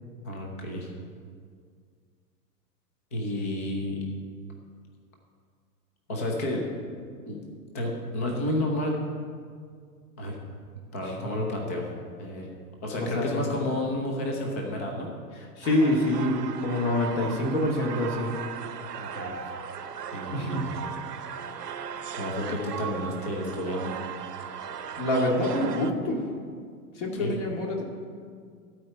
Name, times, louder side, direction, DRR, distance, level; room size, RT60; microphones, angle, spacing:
voice 1, 0.2-0.9 3.1-4.0 6.1-6.7 7.3-7.5 7.7-9.0 10.2-10.4 10.9-11.8 12.2-12.5 12.8-15.1 19.0-19.4 20.1-20.6 22.1-23.9 27.2-27.4, left 1 dB, 10° left, 1 dB, 0.3 m, -31 dB
voice 2, 12.9-13.4 15.4-18.3 20.3-20.6 25.0-26.2 27.0-27.8, left 1 dB, 50° left, 0 dB, 2.2 m, -26 dB
sound 1, 15.6-25.9, right 7 dB, 80° right, 0.8 m, -37 dB
13.0 x 4.4 x 7.6 m, 2.1 s
figure-of-eight pair, 110°, 47 cm